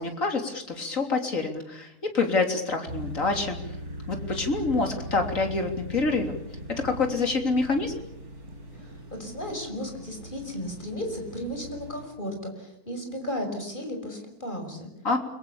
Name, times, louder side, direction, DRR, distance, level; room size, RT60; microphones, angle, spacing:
voice 1, 0.0-3.6 4.1-6.4 6.7-8.0 15.0-15.2, left 3 dB, 60° left, 4 dB, 3.8 m, -27 dB
sound 1, 2.9-12.1, equal, 85° right, 5.2 m, -40 dB
voice 2, 9.2-14.9, equal, 30° left, 4 dB, 6.1 m, -34 dB
29.5 x 22.0 x 7.1 m, 0.79 s
omnidirectional pair, 1.6 m